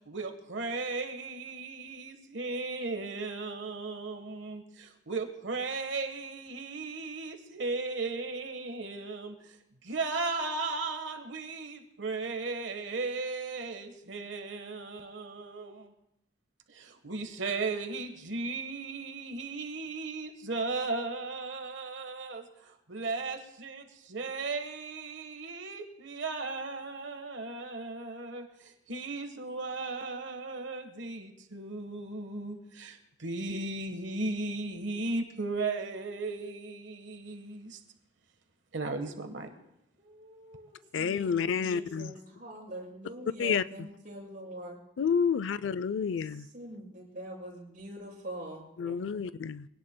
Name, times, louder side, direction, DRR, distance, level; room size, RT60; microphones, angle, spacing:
voice 1, 0.1-9.6 9.8-15.9 16.7-37.8 38.7-39.5, right 3 dB, 75° right, 1.3 m, -36 dB
voice 2, 40.0-44.8 46.0-49.1, right 1 dB, 45° right, 6.6 m, -44 dB
voice 3, 40.9-42.1 43.4-43.6 45.0-46.5 48.8-49.7, left 6 dB, 80° left, 0.4 m, -29 dB
24.0 x 18.0 x 2.2 m
head